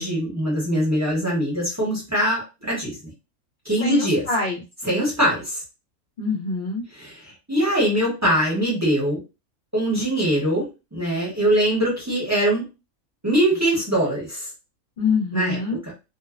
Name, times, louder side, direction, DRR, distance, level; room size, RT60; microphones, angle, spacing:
voice 1, 0.0-3.0 3.6-4.2 4.8-5.6 7.0-9.2 9.7-12.7 13.2-14.5 15.3-15.6, right 1 dB, 15° right, -3 dB, 0.7 m, -22 dB
voice 2, 3.8-4.6 6.2-6.8 15.0-15.8, left 3 dB, 75° left, -3 dB, 0.4 m, -25 dB
2.6 x 2.0 x 2.3 m, 0.27 s
omnidirectional pair, 1.5 m